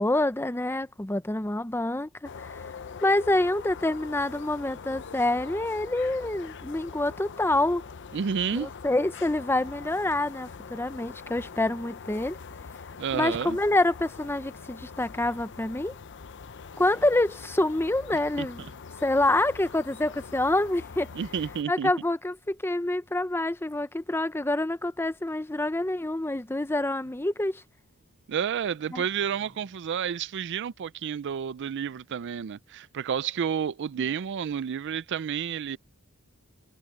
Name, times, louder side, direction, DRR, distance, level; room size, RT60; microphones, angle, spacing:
voice 1, 0.0-2.6 3.0-7.8 8.5-12.4 13.1-15.9 16.8-18.7 19.0-21.1 21.7-27.6 28.9-29.0, left 1 dB, 10° left, 0.7 m, -27 dB
sound 1, 2.2-21.6, left 5 dB, 55° left, 0.7 m, -43 dB
voice 2, 8.1-8.7 13.0-13.6 18.4-18.5 21.1-21.9 28.3-35.8, right 7 dB, 55° right, 0.4 m, -30 dB
sound 2, 26.4-30.2, right 1 dB, 35° right, 6.5 m, -64 dB
head